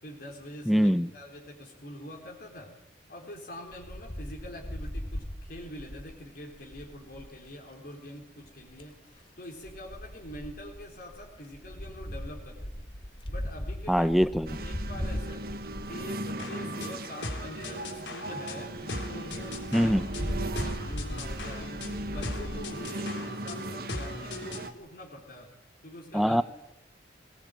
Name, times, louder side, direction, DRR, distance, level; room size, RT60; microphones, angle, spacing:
voice 1, 0.0-2.8 3.1-12.9 13.3-14.1 14.6-15.5 15.9-18.7 19.1-21.7 22.0-25.5 25.8-26.4, left 1 dB, 55° left, -1 dB, 4.0 m, -45 dB
voice 2, 0.7-1.1 13.9-14.6 19.7-20.0 26.1-26.4, equal, ahead, 15 dB, 0.8 m, -23 dB
Wind, 3.7-7.4 8.5-8.9 9.6-16.6 17.2-17.3 17.6-17.7 18.0-18.1 18.4-18.5 18.7-18.8 19.3-22.6, equal, 30° left, 2.7 m, -38 dB
sound 1, 14.5-24.7, right 2 dB, 55° right, 1.7 m, -38 dB
sound 2, 16.4-24.7, left 2 dB, 90° left, 3.7 m, -39 dB
21.0 x 20.0 x 9.1 m, 0.94 s
head